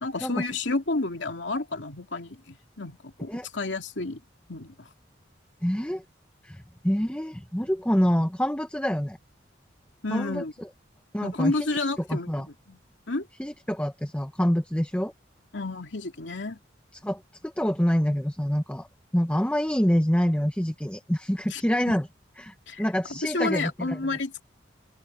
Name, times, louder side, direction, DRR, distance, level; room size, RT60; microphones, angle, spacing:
voice 1, 0.0-4.2 4.5-4.9 10.0-10.5 11.2-12.8 13.1-13.3 15.5-16.6 21.5-21.6 22.7-22.9 23.2-24.4, left 3 dB, 80° left, 2.4 m, -30 dB
voice 2, 5.6-6.0 6.4-9.2 10.1-10.4 11.1-11.5 12.1-12.5 13.4-15.1 16.9-18.9 19.1-22.1 22.4-24.1, equal, 5° left, 0.9 m, -26 dB
open air
head